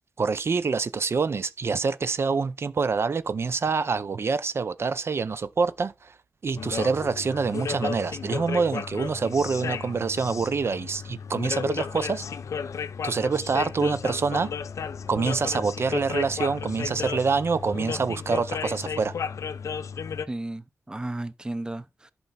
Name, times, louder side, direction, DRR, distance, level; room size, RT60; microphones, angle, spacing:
voice 1, 0.2-6.1 6.4-12.2 13.0-14.5 15.1-19.1, right 4 dB, 55° right, 0.6 m, -26 dB
sound 1, 6.6-20.3, left 6 dB, 85° left, 0.7 m, -34 dB
voice 2, 20.2-22.1, right 1 dB, 15° right, 0.7 m, -34 dB
11.0 x 5.8 x 4.1 m
wide cardioid pair, 105°, 5 cm